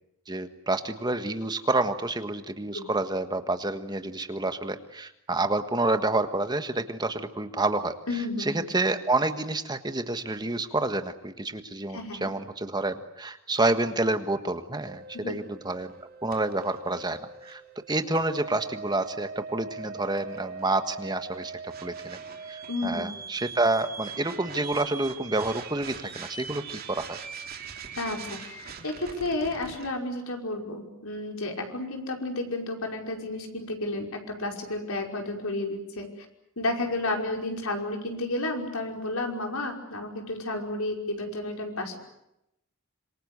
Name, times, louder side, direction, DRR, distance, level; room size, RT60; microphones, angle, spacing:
voice 1, 0.3-7.9 8.4-15.9 16.2-17.6 17.9-21.5 21.8-22.2 22.5-27.2, right 2 dB, 20° right, 9 dB, 1.5 m, -28 dB
voice 2, 8.1-8.7 11.9-12.3 15.2-15.4 22.7-23.1 28.0-28.6 28.8-36.1 36.6-42.0, left 2 dB, 80° left, 3 dB, 5.5 m, -31 dB
sound 1, 14.8-29.9, right 5 dB, 45° right, 3.2 m, -41 dB
26.5 x 24.5 x 8.2 m, 0.83 s
head